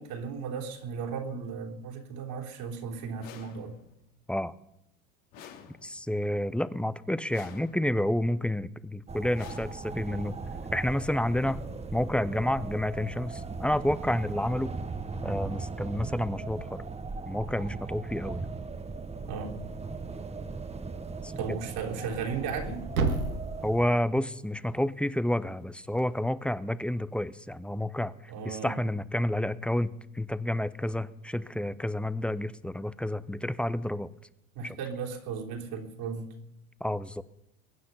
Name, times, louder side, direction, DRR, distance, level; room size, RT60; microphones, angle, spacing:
voice 1, 0.0-3.7 19.3-19.6 21.4-22.8 28.3-28.8 34.6-36.3, right 6 dB, 60° right, 0 dB, 3.6 m, -35 dB
sound 1, 3.2-4.1 5.3-6.2 7.3-8.1 9.3-10.2, left 8 dB, 70° left, 2.5 m, -50 dB
voice 2, 5.8-10.3 10.7-11.6 11.9-14.8 15.2-16.8 17.3-18.5 21.2-21.6 23.6-34.1 34.6-34.8 36.8-37.2, left 1 dB, 5° left, 16 dB, 0.6 m, -30 dB
sound 2, 9.1-23.9, right 4 dB, 15° right, 1.1 m, -38 dB
Thump thud, 22.0-26.1, right 3 dB, 85° right, 2.1 m, -35 dB
22.0 x 9.6 x 5.6 m, 0.84 s
hypercardioid pair, 80°, 41 cm